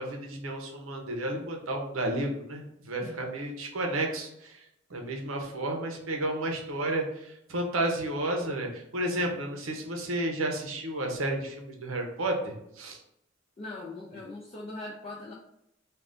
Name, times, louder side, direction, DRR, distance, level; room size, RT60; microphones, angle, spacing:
voice 1, 0.0-4.6 4.9-13.0, right 1 dB, 85° right, 2 dB, 0.7 m, -32 dB
voice 2, 13.6-15.3, left 2 dB, 30° left, -3 dB, 0.3 m, -40 dB
2.5 x 2.3 x 3.4 m, 0.79 s
head